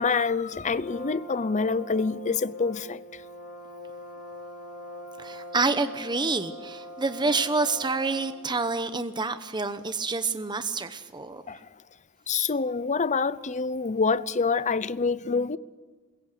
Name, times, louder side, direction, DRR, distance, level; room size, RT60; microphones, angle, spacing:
voice 1, 0.0-3.2 11.5-11.7 12.3-15.6, left 4 dB, 35° left, 0.7 m, -26 dB
Brass instrument, 0.7-8.5, left 1 dB, 65° left, 3.8 m, -42 dB
voice 2, 5.2-11.4, right 3 dB, 20° right, 1.0 m, -28 dB
28.0 x 22.0 x 6.8 m
head